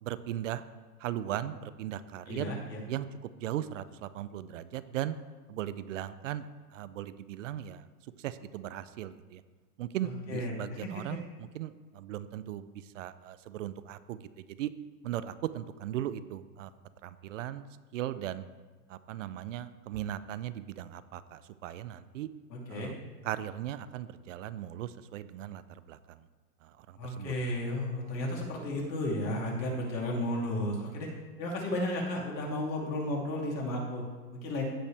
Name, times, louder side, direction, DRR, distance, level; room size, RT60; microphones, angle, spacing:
voice 1, 0.0-0.6 1.0-2.5 2.9-3.1 3.4-5.2 5.5-6.5 6.7-7.8 8.2-9.4 9.8-14.2 14.5-14.7 15.0-16.7 17.0-17.6 17.9-18.4 18.9-22.3 22.7-23.0 23.2-25.6 25.9-26.2 26.6-27.3, right 12 dB, 50° right, 14 dB, 0.5 m, -38 dB
voice 2, 2.3-2.8 10.0-11.2 22.5-22.9 27.0-31.1 31.4-34.7, left 1 dB, 90° left, -2 dB, 2.9 m, -33 dB
16.0 x 5.4 x 3.4 m, 1.4 s
hypercardioid pair, 145°, 49 cm